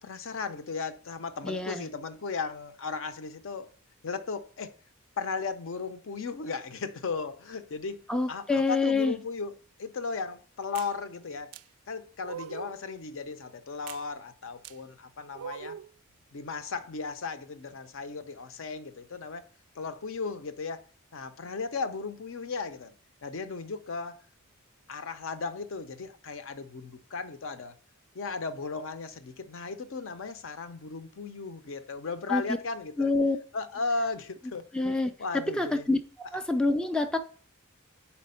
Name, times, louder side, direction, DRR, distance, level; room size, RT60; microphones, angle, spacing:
voice 1, 0.0-3.7 4.0-4.7 5.2-8.0 8.3-9.5 9.8-11.5 11.9-15.8 16.3-19.4 19.8-20.8 21.1-22.9 23.2-24.2 24.9-27.7 28.1-33.1 33.5-34.7 35.2-35.9, left 4 dB, 65° left, 0.6 m, -36 dB
voice 2, 1.4-1.9 8.1-9.2 32.3-32.4 33.0-33.4 34.7-35.1 35.5-36.0 36.3-37.2, left 3 dB, 5° left, 0.3 m, -26 dB
sound 1, 10.7-10.9 11.5-11.6 12.2-12.8 13.9-14.0 14.6-14.8 15.3-15.9, right 9 dB, 90° right, 0.3 m, -41 dB
4.5 x 4.2 x 5.5 m
head